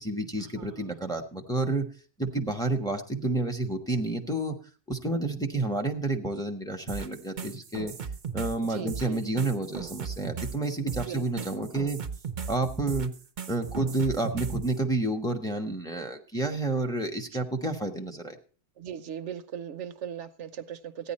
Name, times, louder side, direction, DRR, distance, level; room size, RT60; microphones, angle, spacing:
voice 1, 0.0-1.9 2.2-4.6 4.9-7.9 8.3-12.0 12.5-13.1 13.5-18.4, right 2 dB, 5° left, 4 dB, 1.1 m, -30 dB
voice 2, 0.6-1.0 8.7-9.2 10.9-11.2 18.8-21.1, right 9 dB, 75° right, 11 dB, 1.1 m, -38 dB
sound 1, 6.9-14.7, right 6 dB, 45° right, 0.8 m, -37 dB
15.0 x 9.9 x 4.3 m, 0.40 s
omnidirectional pair, 1.2 m